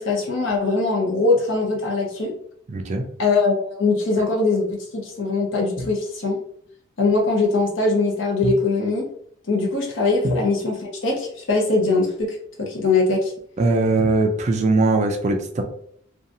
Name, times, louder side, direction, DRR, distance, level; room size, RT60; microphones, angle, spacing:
voice 1, 0.0-2.3 3.2-6.4 7.0-9.1 9.5-13.3, left 3 dB, 65° left, -1 dB, 0.8 m, -21 dB
voice 2, 2.7-3.0 8.4-8.5 10.2-10.3 13.6-15.6, right 2 dB, 35° right, 4 dB, 0.3 m, -20 dB
2.7 x 2.3 x 2.6 m, 0.64 s
head